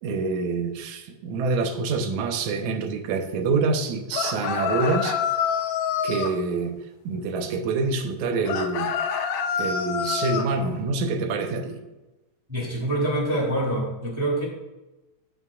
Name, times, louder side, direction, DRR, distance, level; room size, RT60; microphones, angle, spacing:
voice 1, 0.0-5.2 6.0-6.8 7.1-8.9 9.6-11.8, right 4 dB, 80° right, 6 dB, 2.2 m, -26 dB
sound 1, 4.1-6.4 8.5-10.5, left 7 dB, 80° left, 1.9 m, -26 dB
voice 2, 12.5-14.4, right 1 dB, 10° right, -3 dB, 2.0 m, -25 dB
16.5 x 5.6 x 2.4 m, 1.0 s
omnidirectional pair, 3.3 m